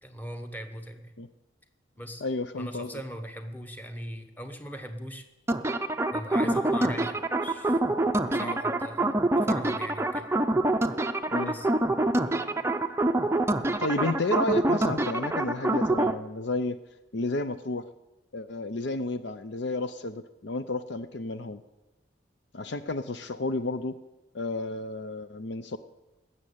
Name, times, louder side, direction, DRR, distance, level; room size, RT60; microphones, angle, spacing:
voice 1, 0.0-1.1 2.0-2.2 2.6-5.3 6.1-7.8 8.3-9.1 9.4-10.3 11.4-11.7, equal, 10° left, 6 dB, 1.2 m, -40 dB
voice 2, 2.2-3.0 6.4-6.6 8.4-8.6 11.3-11.5 13.8-16.8 17.1-17.9 18.3-21.6 22.5-24.0 24.3-25.8, left 2 dB, 60° left, 11 dB, 0.6 m, -31 dB
sound 1, 5.5-16.1, right 2 dB, 15° right, 0.5 m, -26 dB
19.0 x 7.6 x 8.5 m, 1.0 s
head